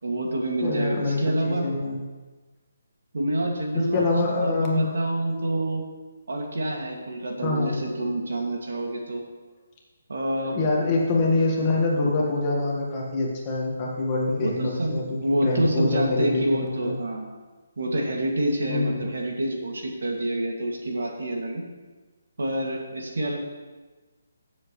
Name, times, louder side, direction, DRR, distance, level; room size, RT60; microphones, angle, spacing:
voice 1, 0.0-1.7 3.1-5.8 6.3-9.2 10.1-10.6 14.4-17.3 17.8-21.6 22.4-23.4, right 1 dB, 80° right, 0 dB, 2.2 m, -27 dB
voice 2, 0.6-2.0 3.9-4.9 7.4-7.8 10.4-17.0 18.6-19.1, left 2 dB, 20° left, -3 dB, 1.6 m, -25 dB
14.5 x 7.5 x 3.2 m, 1.3 s
hypercardioid pair, 170°, 0 cm